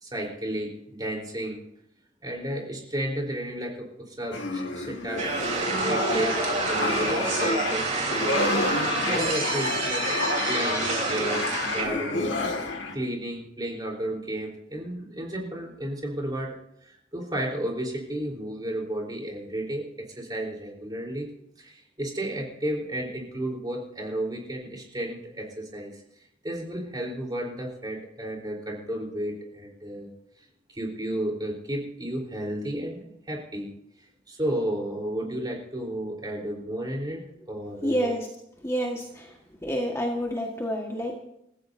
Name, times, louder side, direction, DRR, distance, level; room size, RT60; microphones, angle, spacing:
voice 1, 0.0-1.6 2.2-8.5 9.0-10.2 10.5-12.4 12.9-16.6 16.8-21.3 21.6-26.0 26.4-30.1 30.7-33.7 34.3-38.1, right 1 dB, 25° right, -1 dB, 4.0 m, -33 dB
sound 1, 4.3-12.9, left 3 dB, 80° left, 2.0 m, -29 dB
sound 2, 5.2-11.8, right 3 dB, 40° right, 3.8 m, -28 dB
voice 2, 37.8-38.3 38.6-39.3 39.6-41.2, equal, 15° left, 0 dB, 1.6 m, -28 dB
29.5 x 14.5 x 2.7 m, 0.78 s
head